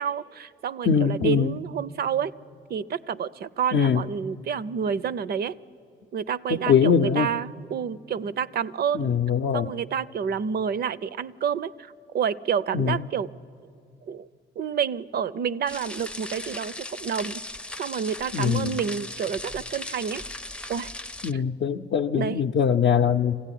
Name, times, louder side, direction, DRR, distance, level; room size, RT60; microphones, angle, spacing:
voice 1, 0.0-2.3 2.7-5.5 6.1-9.1 9.5-13.3 14.1-14.3 14.6-17.4 17.8-20.2 20.7-20.9 21.3-21.4 22.1-22.4, right 7 dB, 55° right, 18 dB, 0.5 m, -29 dB
voice 2, 0.9-1.6 3.7-4.0 6.5-7.3 8.9-9.7 12.7-13.0 18.3-18.8 21.2-23.4, left 7 dB, 55° left, 3 dB, 0.6 m, -22 dB
sound 1, 15.7-21.3, left 1 dB, 5° left, 0.5 m, -37 dB
23.0 x 15.5 x 10.0 m, 2.7 s
cardioid pair, 90°, 20 cm